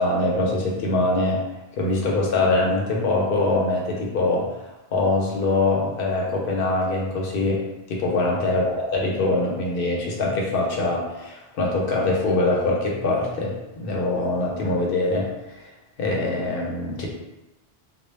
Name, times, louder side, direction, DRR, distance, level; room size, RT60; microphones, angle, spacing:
voice 1, 0.0-1.4 1.7-4.6 4.9-7.6 7.9-15.7 16.0-17.1, left 2 dB, 65° left, -1 dB, 0.8 m, -23 dB
2.1 x 2.1 x 3.1 m, 0.98 s
omnidirectional pair, 1.1 m